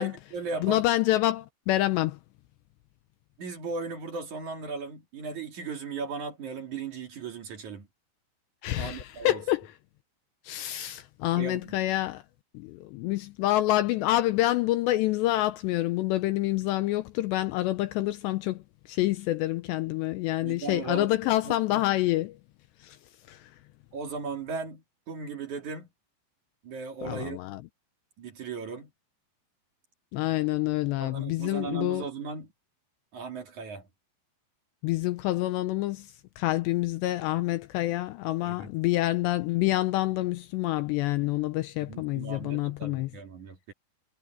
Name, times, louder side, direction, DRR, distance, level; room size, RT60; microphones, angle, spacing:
voice 1, 0.0-0.9 3.4-7.9 8.7-9.4 11.4-11.7 20.4-21.8 23.9-25.9 26.6-27.4 28.2-28.9 31.0-32.5 33.1-33.9 38.4-38.7 41.8-43.7, right 4 dB, 45° right, 3.2 m, -37 dB
voice 2, 0.6-2.2 8.6-9.7 10.5-12.2 12.5-18.6 18.9-22.3 22.8-23.0 23.3-23.4 27.0-27.6 30.1-32.0 34.8-36.1 36.4-43.1, left 16 dB, 90° left, 2.5 m, -27 dB
omnidirectional pair, 5.6 m